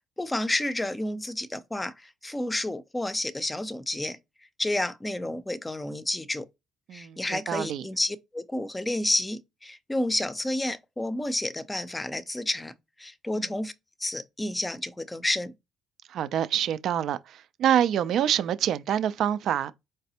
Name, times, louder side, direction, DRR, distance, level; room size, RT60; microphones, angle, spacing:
voice 1, 0.2-4.2 4.6-6.5 6.9-12.7 13.0-13.7 14.0-15.5, left 1 dB, 15° left, 0.5 m, -30 dB
voice 2, 6.9-7.8 13.3-13.5 16.1-19.7, right 10 dB, 65° right, 0.3 m, -26 dB
3.9 x 3.2 x 2.8 m
supercardioid pair, 75°, 0 cm